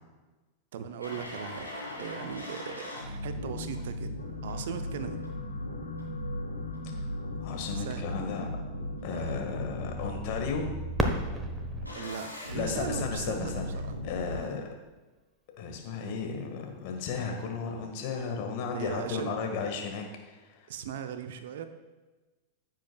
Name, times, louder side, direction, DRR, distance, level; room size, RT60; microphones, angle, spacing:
voice 1, 0.7-1.7 2.0-4.1 4.4-5.2 7.8-8.1 9.1-9.4 11.9-14.0 14.3-14.6 18.7-19.3 20.7-21.7, right 8 dB, 55° right, 9 dB, 0.7 m, -38 dB
sound 1, 1.0-14.4, left 1 dB, 90° left, 2.5 m, -37 dB
sound 2, 4.2-12.6 13.4-13.6 13.9-14.0, left 4 dB, 75° left, 1.3 m, -51 dB
voice 2, 7.4-8.5 9.0-10.8 12.5-13.6 14.0-14.7 15.6-20.7, left 5 dB, 45° left, 2 dB, 1.7 m, -34 dB
Fireworks, 10.9-13.7 14.4-14.5 15.2-15.6 17.5-17.7, right 1 dB, 10° right, 1.1 m, -35 dB
15.0 x 7.4 x 2.3 m, 1.2 s
figure-of-eight pair, 90°, 0 cm